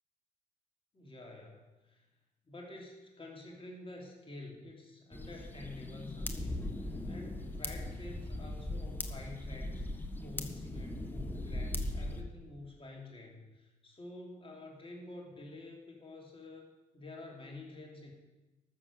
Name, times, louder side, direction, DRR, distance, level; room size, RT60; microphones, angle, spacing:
voice 1, 0.9-2.1 2.4-9.8 10.2-16.7 16.9-18.1, left 2 dB, 30° left, -1 dB, 3.0 m, -49 dB
sound 1, 5.1-12.2, left 1 dB, 10° left, 1.5 m, -39 dB
13.5 x 6.9 x 6.7 m, 1.1 s
hypercardioid pair, 50°, 20 cm